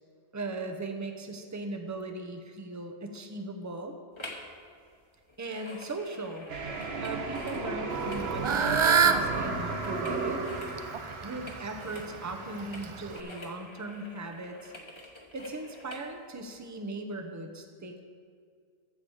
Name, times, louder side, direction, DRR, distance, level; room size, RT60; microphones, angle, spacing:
voice 1, 0.3-4.0 5.4-6.5 7.0-10.4 11.2-14.7 15.3-18.0, right 2 dB, 20° right, 5 dB, 0.7 m, -38 dB
sound 1, 4.2-4.5 4.8-16.1 16.6-16.7, left 1 dB, 25° left, 1.2 m, -48 dB
sound 2, 6.5-12.4, right 4 dB, 70° right, 1.3 m, -34 dB
Fowl / Bird, 7.9-13.2, right 6 dB, 50° right, 0.3 m, -29 dB
13.5 x 4.9 x 7.1 m, 2.2 s
omnidirectional pair, 1.1 m